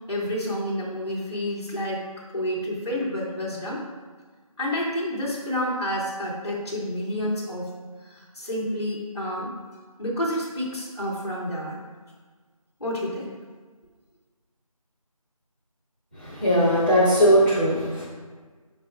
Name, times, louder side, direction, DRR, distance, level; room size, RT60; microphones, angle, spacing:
voice 1, 0.1-2.1 2.3-3.8 4.6-7.7 8.1-9.5 10.0-11.8 12.8-13.3, equal, 45° left, -7 dB, 1.8 m, -29 dB
voice 2, 16.2-18.1, equal, 15° right, -11 dB, 1.3 m, -19 dB
10.5 x 4.6 x 2.4 m, 1.4 s
figure-of-eight pair, 175°, 19 cm